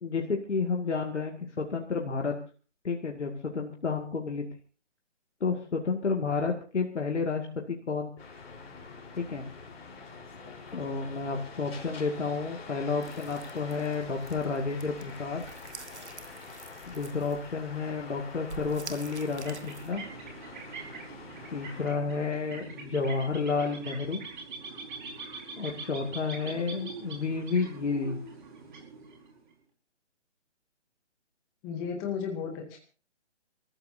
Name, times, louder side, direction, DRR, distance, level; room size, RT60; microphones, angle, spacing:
voice 1, 0.0-2.4 2.8-4.5 5.4-8.1 9.2-9.5 10.7-15.4 16.9-20.0 21.5-24.2 25.6-28.2, left 4 dB, 75° left, 1 dB, 2.2 m, -31 dB
sound 1, 8.2-21.9, left 4 dB, 55° left, 4.1 m, -46 dB
sound 2, 13.0-19.9, right 4 dB, 70° right, 2.0 m, -48 dB
sound 3, 19.2-29.5, right 4 dB, 40° right, 4.9 m, -43 dB
voice 2, 31.6-32.8, left 6 dB, 5° left, 3 dB, 0.6 m, -34 dB
29.0 x 14.0 x 2.7 m, 0.37 s
figure-of-eight pair, 155°, 36 cm